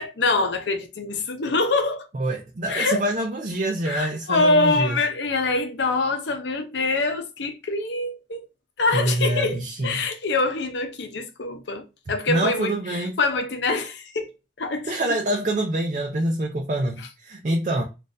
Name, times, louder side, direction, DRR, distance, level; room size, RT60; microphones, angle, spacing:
voice 1, 0.0-2.1 2.7-3.1 3.9-8.5 8.8-14.3 14.6-14.9, left 3 dB, 70° left, 0.7 m, -25 dB
voice 2, 2.1-5.0 8.9-10.0 12.3-13.2 14.9-17.8, right 1 dB, 40° right, 0.5 m, -25 dB
4.0 x 2.5 x 2.5 m
head